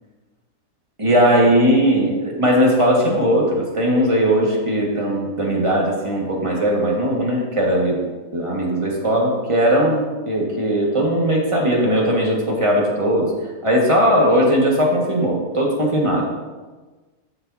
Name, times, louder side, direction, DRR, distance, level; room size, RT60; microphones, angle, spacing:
voice 1, 1.0-8.1 8.3-13.3 13.6-16.3, equal, 20° right, -3 dB, 1.7 m, -18 dB
12.5 x 6.8 x 2.8 m, 1.3 s
omnidirectional pair, 1.5 m